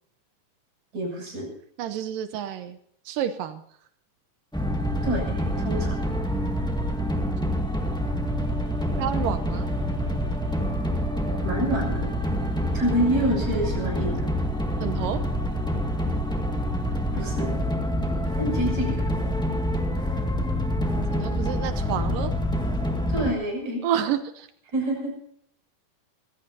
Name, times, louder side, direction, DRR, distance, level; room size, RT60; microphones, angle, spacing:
voice 1, 0.9-1.5 5.0-6.0 11.4-12.1 12.7-14.3 17.1-17.6 18.4-19.0 23.1-23.8 24.7-25.1, right 1 dB, 55° right, 0 dB, 8.5 m, -27 dB
voice 2, 1.8-2.8 3.1-3.6 9.0-9.7 14.8-15.2 18.3-18.7 21.1-22.3 23.8-24.5, right 10 dB, 85° right, 9 dB, 2.6 m, -29 dB
sound 1, 4.5-23.3, equal, 5° left, 0.8 m, -26 dB
25.0 x 16.0 x 2.8 m, 0.68 s
omnidirectional pair, 3.8 m